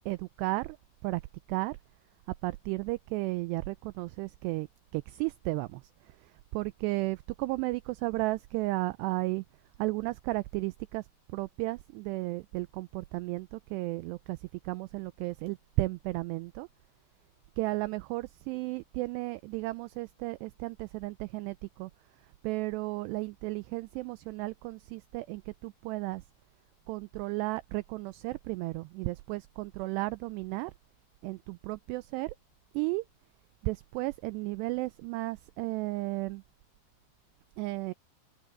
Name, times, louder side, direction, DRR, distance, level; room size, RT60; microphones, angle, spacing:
voice 1, 0.1-0.8 1.0-1.2 1.5-1.8 2.4-4.7 4.9-9.4 9.8-16.7 17.6-21.9 22.4-26.2 26.9-30.7 31.2-32.4 32.7-33.0 33.6-36.4 37.6-37.9, right 21 dB, 90° right, 2.4 m, -34 dB
omnidirectional pair, 5.4 m